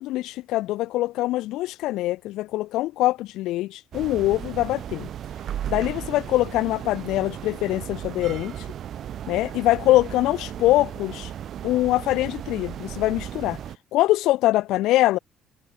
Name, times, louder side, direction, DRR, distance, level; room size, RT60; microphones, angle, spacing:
voice 1, 0.0-5.1 5.7-8.7 9.3-11.3 11.6-13.6 13.9-15.2, left 16 dB, 75° left, 0.3 m, -23 dB
sound 1, 3.9-13.8, right 10 dB, 45° right, 2.4 m, -35 dB
cardioid pair, 150°, 0 cm